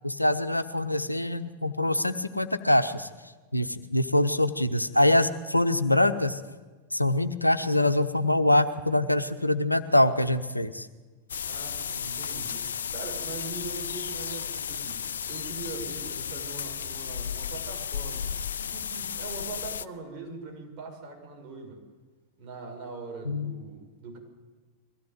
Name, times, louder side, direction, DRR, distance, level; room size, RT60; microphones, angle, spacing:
voice 1, 0.0-3.1 3.5-6.4 6.9-10.9 23.3-23.5, left 1 dB, 85° left, 12 dB, 1.0 m, -24 dB
sound 1, 11.3-19.9, left 7 dB, 65° left, 0.7 m, -34 dB
voice 2, 11.5-21.8 22.4-24.2, right 3 dB, 40° right, 2 dB, 6.7 m, -41 dB
22.0 x 16.5 x 9.5 m, 1.3 s
figure-of-eight pair, 90°, 0 cm